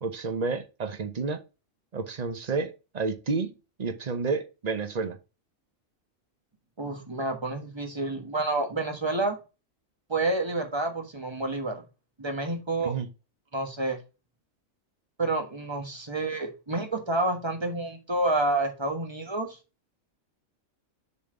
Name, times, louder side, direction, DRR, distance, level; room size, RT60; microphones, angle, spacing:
voice 1, 0.0-1.4 1.9-3.5 3.8-5.2 12.8-13.1, right 4 dB, 35° right, 0.8 m, -30 dB
voice 2, 6.8-9.4 10.1-11.8 12.2-12.9 13.5-14.0 15.2-19.6, right 2 dB, 20° right, 1.3 m, -29 dB
7.0 x 4.3 x 4.9 m
omnidirectional pair, 1.4 m